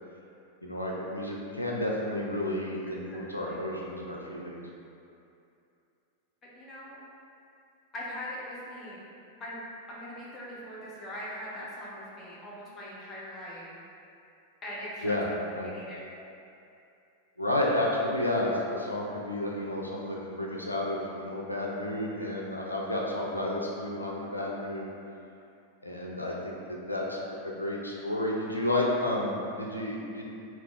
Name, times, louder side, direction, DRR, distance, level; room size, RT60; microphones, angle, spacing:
voice 1, 0.6-4.6 15.0-15.3 15.6-15.7 17.4-24.9 25.8-30.2, left 1 dB, 85° left, -3 dB, 0.4 m, -31 dB
voice 2, 3.1-3.6 6.5-7.0 7.9-9.0 9.4-9.6 9.9-13.7 14.6-15.2 15.6-16.0, left 1 dB, 25° left, -6 dB, 0.9 m, -41 dB
3.3 x 2.3 x 3.8 m, 2.6 s
figure-of-eight pair, 90°, 0 cm